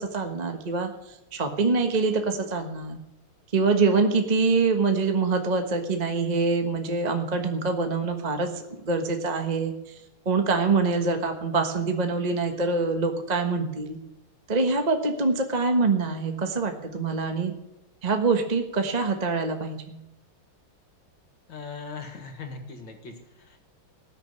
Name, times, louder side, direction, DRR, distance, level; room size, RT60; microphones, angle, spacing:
voice 1, 0.0-3.0 3.5-10.0 10.2-14.0 14.5-17.5 18.0-20.0, right 4 dB, 25° right, 5 dB, 1.2 m, -25 dB
voice 2, 21.5-23.6, left 4 dB, 60° left, 5 dB, 2.5 m, -40 dB
19.0 x 6.4 x 9.7 m, 0.90 s
omnidirectional pair, 2.3 m